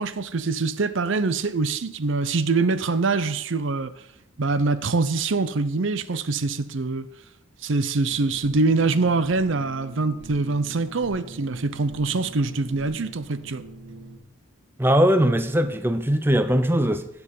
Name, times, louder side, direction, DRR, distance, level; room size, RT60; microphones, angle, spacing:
voice 1, 0.0-3.9 4.4-7.1 7.6-13.6, right 3 dB, 60° right, 0.7 m, -24 dB
sound 1, 8.0-14.2, right 2 dB, 85° right, 1.8 m, -43 dB
voice 2, 14.8-17.1, equal, 10° right, 0.6 m, -20 dB
16.5 x 7.1 x 5.4 m
head